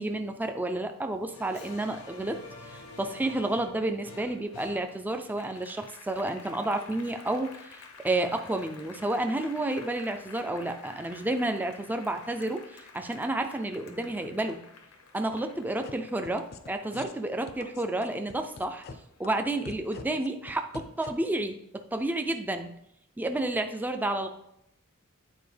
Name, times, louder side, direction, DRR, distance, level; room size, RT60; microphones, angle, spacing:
voice 1, 0.0-2.4 2.7-14.6 15.1-18.8 19.2-22.7 23.2-24.3, right 2 dB, 10° right, 6 dB, 0.3 m, -31 dB
Applause, 1.3-18.1 18.5-19.7, left 3 dB, 80° left, 0.8 m, -50 dB
sound 1, 15.8-15.9 16.2-16.7 16.9-17.1 17.5-18.9 19.2-19.3 19.7-21.1, left 4 dB, 50° left, 0.5 m, -42 dB
9.1 x 4.2 x 3.3 m, 0.77 s
head